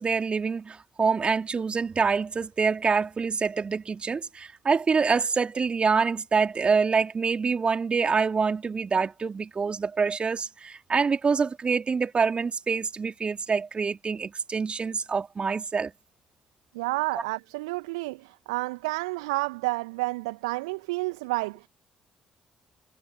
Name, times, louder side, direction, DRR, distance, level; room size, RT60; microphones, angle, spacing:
voice 1, 0.0-15.9, right 5 dB, 35° right, 3.4 m, -26 dB
voice 2, 16.7-21.7, right 24 dB, 70° right, 1.6 m, -30 dB
figure-of-eight pair, 45°, 3 cm